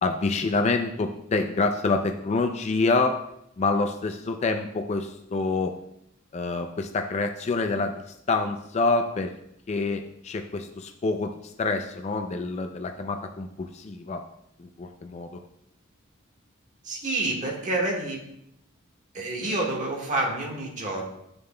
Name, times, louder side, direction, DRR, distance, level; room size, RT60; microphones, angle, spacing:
voice 1, 0.0-3.2 3.6-5.7 6.3-7.9 8.3-9.3 9.7-14.2 14.6-15.3 19.4-19.6, left 3 dB, 35° left, 5 dB, 0.4 m, -27 dB
voice 2, 16.8-18.2 19.1-21.0, right 2 dB, 40° right, -1 dB, 1.5 m, -28 dB
8.8 x 6.7 x 2.2 m, 0.77 s
head